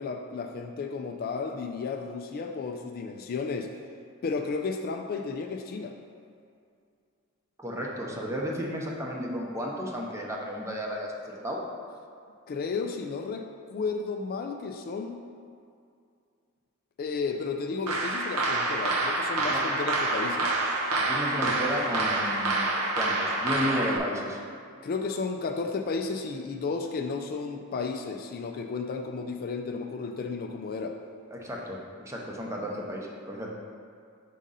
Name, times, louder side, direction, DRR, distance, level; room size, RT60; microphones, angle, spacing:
voice 1, 0.0-3.7 4.2-5.9 12.5-15.2 17.0-20.5 24.8-31.0, left 4 dB, 45° left, 4 dB, 0.3 m, -33 dB
voice 2, 7.6-11.6 19.5-19.6 21.0-24.4 31.3-33.6, equal, 15° right, -2 dB, 0.7 m, -33 dB
sound 1, 17.9-24.0, right 2 dB, 80° right, 0.6 m, -27 dB
5.2 x 3.7 x 5.4 m, 2.3 s
head